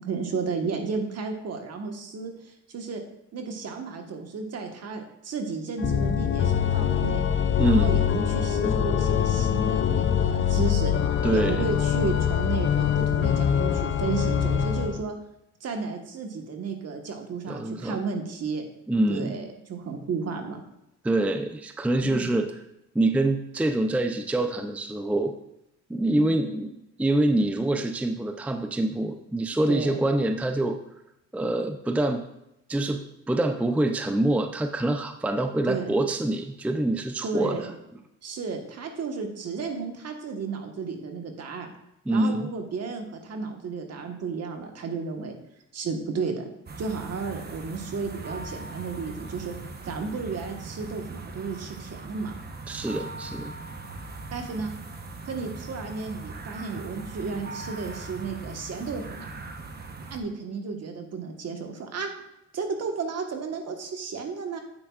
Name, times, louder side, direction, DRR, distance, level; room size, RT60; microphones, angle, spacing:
voice 1, 0.0-3.0 3.3-7.2 7.6-10.9 11.3-15.1 15.6-18.6 19.1-20.6 22.0-22.3 26.2-26.3 29.7-30.0 35.7-35.9 37.2-37.7 38.2-41.7 42.1-45.3 45.7-46.5 46.8-49.5 49.8-52.4 54.3-54.7 55.2-59.3 60.1-62.1 62.5-64.6, right 4 dB, 55° right, 4 dB, 1.4 m, -33 dB
Organ, 5.8-15.0, left 9 dB, 40° left, 0.5 m, -24 dB
voice 2, 7.6-8.0 11.2-11.7 17.5-18.0 18.9-19.5 21.0-22.5 22.9-25.3 25.9-30.8 31.3-32.2 32.7-37.7 42.1-42.5 52.7-53.5, right 1 dB, 5° right, 7 dB, 0.5 m, -25 dB
sound 1, 46.7-60.2, right 3 dB, 30° right, 1.0 m, -40 dB
8.8 x 8.4 x 2.4 m, 0.84 s
cardioid pair, 90°, 30 cm